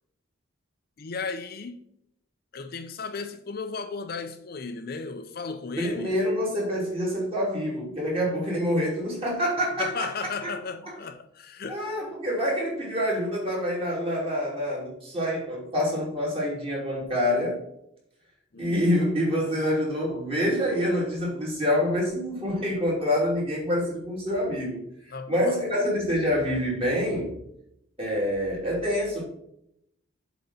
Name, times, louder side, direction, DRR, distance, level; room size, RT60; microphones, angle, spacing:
voice 1, 1.0-1.8 2.5-6.1 9.8-11.8 18.5-18.8 19.5-19.9 25.1-25.6, left 4 dB, 45° left, 0.5 m, -35 dB
voice 2, 5.8-10.1 10.9-11.0 11.7-17.6 18.6-24.8 25.3-27.4 28.0-29.2, equal, 25° right, 3.0 m, -26 dB
7.5 x 4.1 x 5.7 m
head